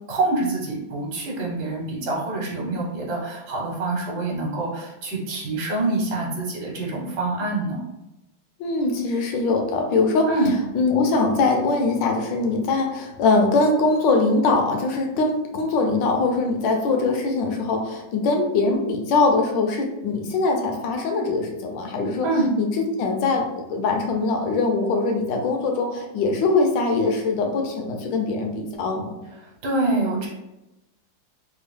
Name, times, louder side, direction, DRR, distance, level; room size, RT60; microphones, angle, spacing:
voice 1, 0.1-7.8 10.3-10.5 22.2-22.5 29.3-30.3, right 2 dB, 60° right, -2 dB, 1.4 m, -26 dB
voice 2, 8.6-10.3 10.7-22.3 22.6-22.7 23.0-29.1, left 3 dB, 75° left, 2 dB, 1.3 m, -22 dB
3.6 x 2.3 x 3.4 m, 0.94 s
omnidirectional pair, 2.2 m